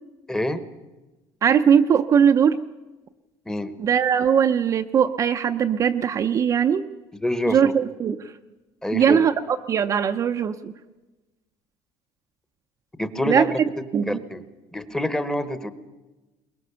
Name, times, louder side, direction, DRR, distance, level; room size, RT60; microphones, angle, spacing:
voice 1, 0.3-0.6 3.5-3.7 7.2-7.7 8.8-9.3 13.0-13.6 14.1-14.5 14.7-15.7, left 1 dB, 5° left, 11 dB, 1.1 m, -26 dB
voice 2, 1.4-2.6 3.8-6.8 7.5-8.3 8.9-10.7 13.3-13.5 13.9-14.2, right 8 dB, 30° right, 6 dB, 0.6 m, -20 dB
22.5 x 21.0 x 6.9 m, 1.1 s
cardioid pair, 170°, 11 cm